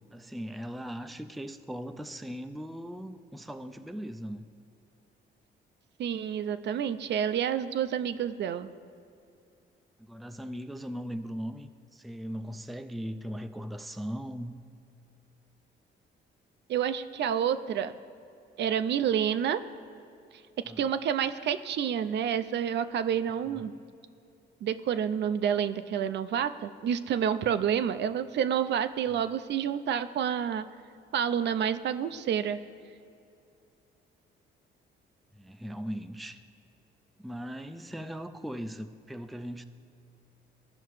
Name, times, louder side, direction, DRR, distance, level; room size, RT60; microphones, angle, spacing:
voice 1, 0.1-4.5 10.0-14.6 20.6-20.9 23.4-23.7 35.3-36.4 37.2-39.6, equal, ahead, 8 dB, 0.3 m, -39 dB
voice 2, 6.0-8.7 16.7-18.0 18.6-19.6 20.8-23.7 24.6-30.7 31.1-32.6, right 8 dB, 60° right, 11 dB, 0.4 m, -29 dB
15.0 x 5.7 x 3.1 m, 2.6 s
cardioid pair, 90°, 20 cm